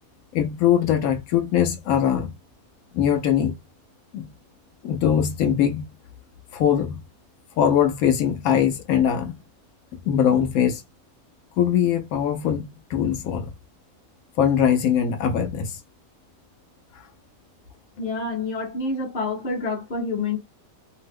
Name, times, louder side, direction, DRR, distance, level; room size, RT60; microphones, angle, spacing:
voice 1, 0.3-2.3 2.9-3.5 4.1-4.3 4.8-5.9 6.5-7.0 7.6-9.4 10.1-10.8 11.6-13.5 14.4-15.8, left 9 dB, 80° left, 1.1 m, -21 dB
voice 2, 18.0-20.4, left 3 dB, 40° left, 1.1 m, -27 dB
2.8 x 2.0 x 3.5 m
omnidirectional pair, 1.5 m